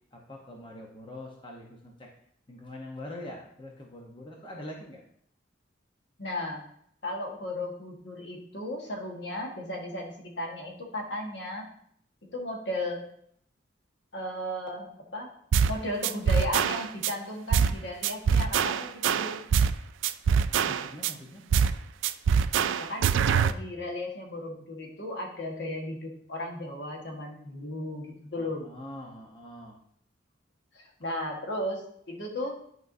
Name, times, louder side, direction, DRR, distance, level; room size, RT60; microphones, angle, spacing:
voice 1, 0.1-2.1 2.5-5.0 20.5-21.4 28.4-29.8, left 1 dB, 25° left, -1 dB, 0.8 m, -44 dB
voice 2, 6.2-6.6 7.0-11.7 12.3-13.0 14.1-15.3 15.7-19.4 22.8-28.7 30.7-32.5, left 1 dB, 65° left, 0 dB, 1.4 m, -35 dB
sound 1, 15.5-15.8 16.0-17.1 17.5-17.8 18.0-19.8 20.0-21.1 21.5-21.8 22.0-23.5, right 7 dB, 85° right, 0.3 m, -24 dB
10.5 x 4.6 x 2.6 m, 0.67 s
head